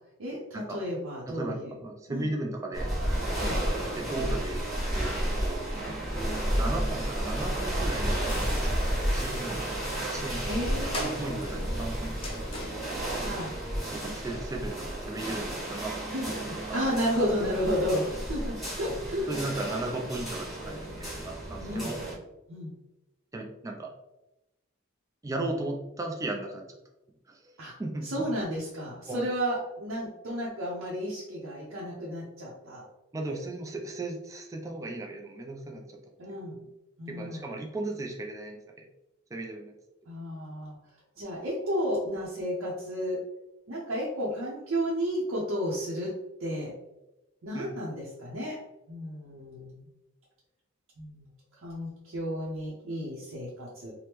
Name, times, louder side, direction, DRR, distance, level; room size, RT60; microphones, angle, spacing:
voice 1, 0.2-1.8 2.1-2.3 3.4-3.6 5.8-5.9 10.4-11.4 13.2-13.6 16.1-19.3 21.6-22.0 22.5-22.7 27.6-27.7 28.0-32.8 33.3-33.4 36.2-36.7 37.0-37.5 40.1-40.8 41.2-43.2 43.7-46.1 46.4-46.7 47.4-48.6 48.9-49.9 51.0-51.3 51.6-53.9, equal, 75° right, -6 dB, 0.6 m, -32 dB
voice 2, 1.3-2.9 4.0-4.6 4.9-5.1 5.4-5.6 6.6-8.7 9.1-9.8 10.1-10.4 11.0-12.6 13.9-16.1 16.7-16.8 19.3-22.0 23.3-23.9 25.2-26.6 27.3-28.3 29.1-29.2 33.1-36.0 36.3-36.4 37.1-38.6 39.3-39.7 47.5-47.8, right 2 dB, 15° right, 1 dB, 0.3 m, -36 dB
sound 1, 2.7-22.1, right 1 dB, ahead, 1.0 m, -32 dB
sound 2, 8.3-14.0, left 1 dB, 25° left, 0.6 m, -43 dB
3.4 x 2.1 x 2.9 m, 0.96 s
head